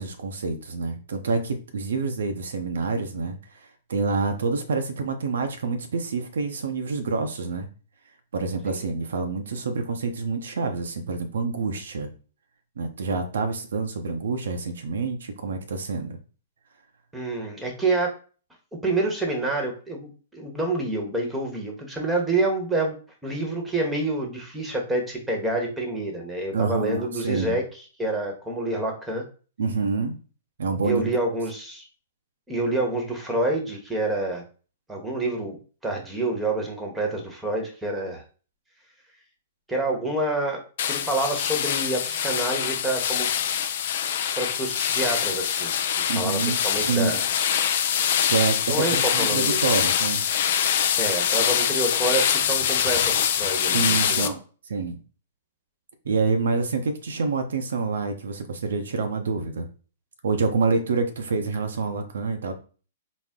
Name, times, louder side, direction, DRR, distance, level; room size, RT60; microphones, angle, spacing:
voice 1, 0.0-7.7 8.3-12.1 12.8-16.2 26.5-27.6 29.6-30.2 30.6-31.1 46.1-47.2 48.3-50.2 53.7-54.4 54.7-55.0 56.0-59.7 60.2-62.5, right 4 dB, 75° right, 6 dB, 0.6 m, -27 dB
voice 2, 17.1-18.2 18.8-22.9 23.2-27.6 28.0-29.3 30.8-31.8 32.5-34.4 34.9-35.6 35.8-38.2 39.7-43.3 44.4-45.7 46.0-47.2 48.7-49.6 51.0-54.3, right 2 dB, 10° right, 2 dB, 1.0 m, -27 dB
sound 1, 40.8-54.3, left 9 dB, 55° left, 0.4 m, -24 dB
4.1 x 2.0 x 3.6 m, 0.37 s
hypercardioid pair, 125°, 0 cm